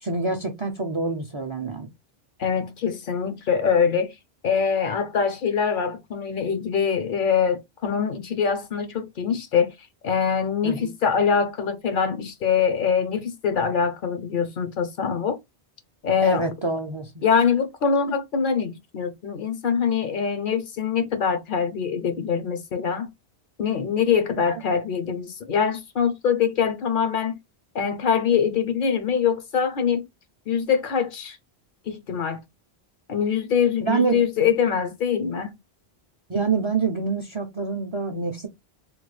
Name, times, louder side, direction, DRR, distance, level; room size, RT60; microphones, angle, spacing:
voice 1, 0.0-1.9 10.6-10.9 16.2-17.2 24.5-24.6 33.9-34.2 36.3-38.5, right 4 dB, 45° right, 0.4 m, -26 dB
voice 2, 2.4-4.1 4.4-9.7 10.0-15.4 16.0-16.5 17.2-23.1 23.6-27.4 27.7-30.1 30.5-31.4 31.9-32.4 33.1-35.6, left 6 dB, 60° left, 0.7 m, -23 dB
3.1 x 2.2 x 3.1 m
omnidirectional pair, 1.1 m